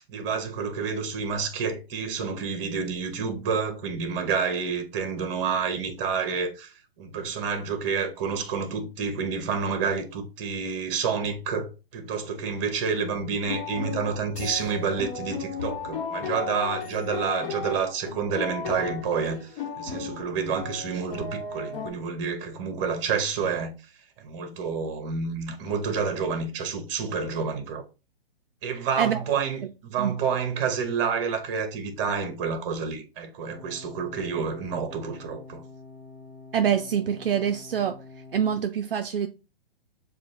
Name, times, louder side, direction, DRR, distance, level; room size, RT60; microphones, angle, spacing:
voice 1, 0.0-23.7 24.2-27.8 28.6-35.6, right 5 dB, 30° right, 0.9 m, -29 dB
sound 1, 13.4-21.9, left 5 dB, 40° left, 1.5 m, -35 dB
sound 2, 33.5-38.6, left 3 dB, 5° left, 0.8 m, -46 dB
voice 2, 36.5-38.0 38.3-39.3, right 8 dB, 65° right, 0.5 m, -25 dB
7.3 x 2.5 x 2.6 m
figure-of-eight pair, 115°, 31 cm